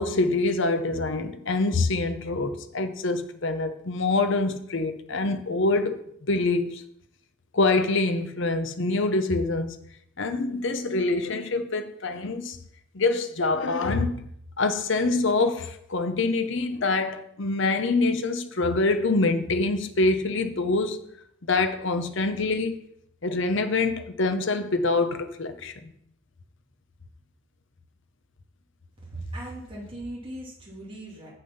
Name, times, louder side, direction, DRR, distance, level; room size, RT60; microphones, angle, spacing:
voice 1, 0.0-6.9 7.5-9.8 10.2-12.6 12.9-14.2 14.6-21.0 21.5-22.8 23.2-25.9, left 3 dB, 55° left, 0.8 m, -25 dB
voice 2, 29.1-31.3, right 1 dB, 25° right, 2.6 m, -38 dB
7.6 x 6.7 x 5.5 m
head